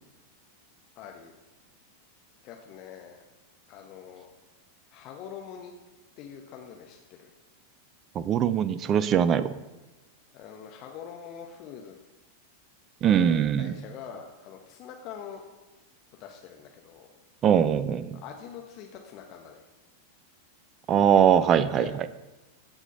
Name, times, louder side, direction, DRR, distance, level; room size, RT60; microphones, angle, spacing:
voice 1, 1.0-1.3 2.4-3.2 3.7-4.3 4.9-5.7 6.2-7.3 10.3-11.9 13.0-15.4 16.2-17.1 18.2-19.7 21.3-22.0, left 8 dB, 40° left, 2 dB, 1.1 m, -44 dB
voice 2, 8.1-9.5 13.0-13.7 17.4-18.2 20.9-21.9, right 8 dB, 30° right, 16 dB, 0.5 m, -22 dB
14.5 x 5.1 x 5.5 m, 1.1 s
figure-of-eight pair, 90°, 0 cm